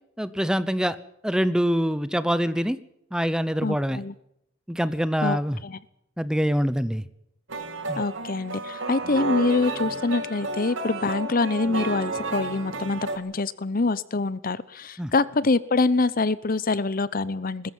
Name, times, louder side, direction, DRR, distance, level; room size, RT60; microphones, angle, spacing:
voice 1, 0.2-1.0 1.2-2.8 3.1-4.0 4.7-5.6 6.2-7.0 7.9-8.0 15.0-15.1, equal, 5° right, 15 dB, 0.8 m, -24 dB
voice 2, 3.6-4.1 5.2-5.8 8.0-17.7, left 3 dB, 45° left, 18 dB, 0.8 m, -25 dB
sound 1, 7.5-13.2, right 3 dB, 70° right, 3.0 m, -31 dB
21.0 x 14.0 x 9.5 m, 0.78 s
head